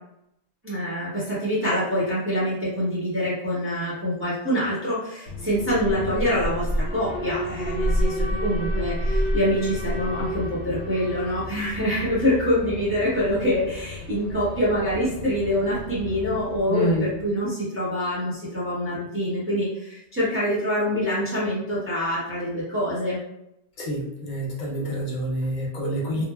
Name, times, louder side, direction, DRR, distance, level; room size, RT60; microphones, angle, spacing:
voice 1, 0.6-23.2, equal, 15° right, -8 dB, 0.7 m, -25 dB
Alarm, 5.3-17.3, equal, 85° left, 0.9 m, -30 dB
voice 2, 16.7-17.1 23.8-26.3, equal, 50° left, -3 dB, 0.7 m, -27 dB
3.0 x 2.0 x 2.2 m, 0.81 s
omnidirectional pair, 1.1 m